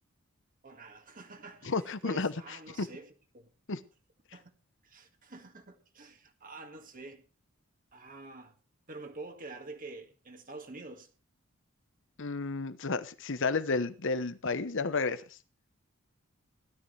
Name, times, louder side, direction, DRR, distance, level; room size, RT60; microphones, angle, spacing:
voice 1, 0.6-3.5 4.3-4.5 4.8-7.2 7.9-8.6 8.9-11.1, right 2 dB, 40° right, 2.0 m, -47 dB
voice 2, 1.6-2.9 3.7-3.8 12.2-15.4, left 3 dB, 60° left, 1.0 m, -32 dB
17.0 x 12.5 x 3.3 m
head